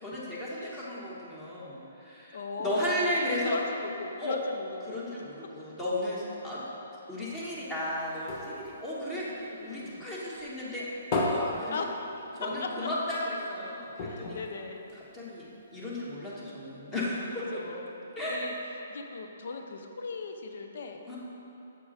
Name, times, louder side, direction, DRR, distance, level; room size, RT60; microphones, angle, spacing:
voice 1, 0.0-3.6 4.2-4.4 4.8-6.6 7.1-10.9 11.3-11.8 12.3-14.4 15.0-17.6 18.1-18.5 21.1-21.2, left 1 dB, 15° left, -7 dB, 1.3 m, -34 dB
voice 2, 2.3-2.9 3.4-5.0 9.2-10.1 11.7-12.1 12.6-12.9 14.1-14.9 17.5-18.0 18.3-18.5 18.9-21.0, left 4 dB, 60° left, 4 dB, 0.6 m, -38 dB
sound 1, 7.4-10.0 10.4-12.6 13.0-13.1 13.4-13.5 13.9-15.5 16.1-16.2, left 2 dB, 35° left, 1.0 m, -35 dB
7.4 x 4.6 x 4.2 m, 3.0 s
hypercardioid pair, 135°, 0 cm